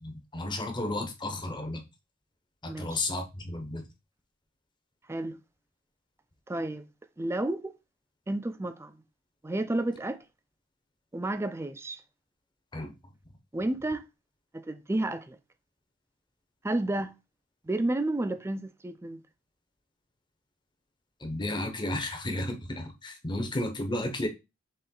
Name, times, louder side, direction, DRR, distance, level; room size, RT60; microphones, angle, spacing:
voice 1, 0.0-1.8 2.6-3.9 12.7-12.9 21.2-24.3, left 1 dB, 20° left, 0.8 m, -33 dB
voice 2, 2.7-3.0 5.1-5.4 6.5-6.9 7.2-7.7 8.3-9.0 9.4-10.2 11.1-12.0 13.5-14.0 14.5-15.4 16.6-17.1 17.6-19.2, right 1 dB, 15° right, 0.4 m, -31 dB
4.3 x 3.1 x 3.7 m
head